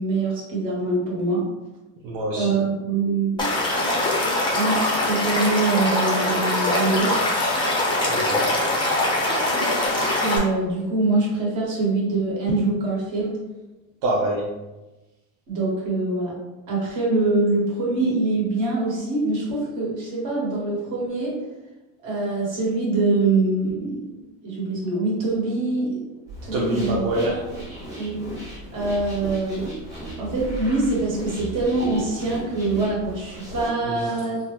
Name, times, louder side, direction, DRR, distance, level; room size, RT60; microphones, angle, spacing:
voice 1, 0.0-1.4 2.4-3.5 4.4-7.2 10.2-13.4 15.5-16.3 16.7-21.4 22.0-26.1 26.4-27.0 28.0-28.2 28.7-29.7 30.2-34.4, right 3 dB, 50° right, -5 dB, 1.4 m, -24 dB
voice 2, 2.0-2.6 8.0-8.6 14.0-14.5 26.5-27.4 33.8-34.2, right 1 dB, 80° right, -4 dB, 0.8 m, -26 dB
Stream / Liquid, 3.4-10.4, left 1 dB, 10° left, 0.5 m, -22 dB
sound 1, 26.3-33.7, right 1 dB, 10° right, 1.1 m, -36 dB
3.5 x 2.0 x 2.9 m, 1.1 s
cardioid pair, 140°, 40 cm